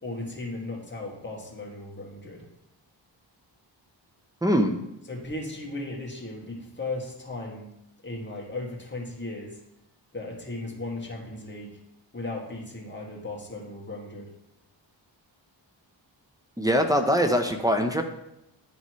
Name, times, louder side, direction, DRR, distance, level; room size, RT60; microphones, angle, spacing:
voice 1, 0.0-2.5 5.1-7.7 8.0-9.6 10.1-11.8 12.1-14.3, left 2 dB, 25° left, -2 dB, 2.0 m, -36 dB
voice 2, 4.4-4.7 16.6-18.0, equal, 10° right, 5 dB, 0.7 m, -22 dB
11.0 x 4.2 x 3.1 m, 0.86 s
cardioid pair, 75°, 46 cm